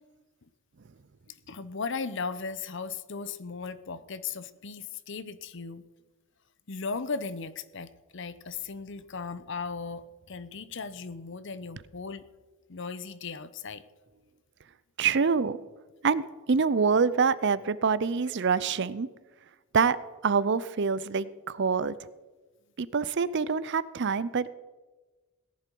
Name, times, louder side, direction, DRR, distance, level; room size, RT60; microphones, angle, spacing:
voice 1, 1.3-5.8 6.7-12.2 12.7-13.8, left 4 dB, 55° left, 15 dB, 0.7 m, -37 dB
voice 2, 15.0-15.6 16.0-19.1 19.7-20.0 20.2-22.0 22.8-24.5, right 5 dB, 55° right, 17 dB, 0.5 m, -26 dB
17.5 x 11.0 x 4.6 m, 1.2 s
head